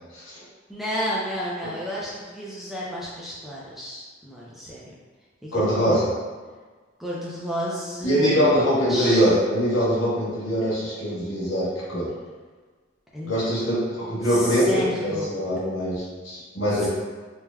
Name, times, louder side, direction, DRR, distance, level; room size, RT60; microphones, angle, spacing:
voice 1, 0.7-4.8 5.4-6.0 7.0-8.5 8.9-9.3 13.1-13.4 14.3-15.3 16.8-16.9, equal, ahead, -7 dB, 0.3 m, -31 dB
voice 2, 5.5-6.1 8.0-12.1 13.2-16.9, equal, 75° left, -9 dB, 1.1 m, -23 dB
3.3 x 2.1 x 2.2 m, 1.4 s
head